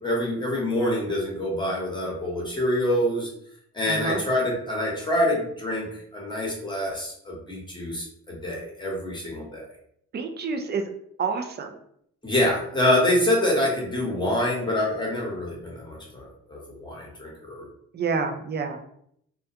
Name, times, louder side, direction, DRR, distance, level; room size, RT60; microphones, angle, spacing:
voice 1, 0.0-3.3 3.7-9.6 12.2-17.7, left 1 dB, 15° left, -3 dB, 1.0 m, -26 dB
voice 2, 3.9-4.2 10.1-10.8 11.2-11.7 17.9-18.8, right 5 dB, 35° right, 4 dB, 0.4 m, -28 dB
2.3 x 2.1 x 2.7 m, 0.70 s
cardioid pair, 90°, 30 cm